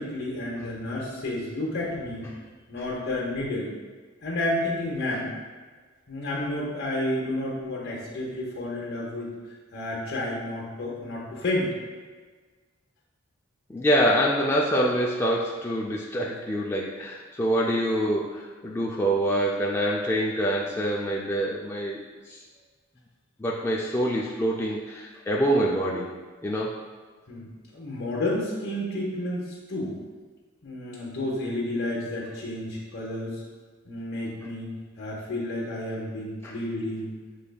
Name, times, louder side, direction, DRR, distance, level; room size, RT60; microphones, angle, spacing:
voice 1, 0.0-2.3 2.7-3.7 4.2-5.3 6.1-9.3 9.7-11.7 27.3-29.9 30.6-33.4 33.8-34.7 35.0-37.1, left 1 dB, 55° left, -5 dB, 0.9 m, -31 dB
voice 2, 13.7-22.4 23.4-26.1 26.4-26.8 36.4-36.5, equal, 10° left, -3 dB, 0.3 m, -25 dB
6.6 x 3.3 x 2.3 m, 1.4 s
head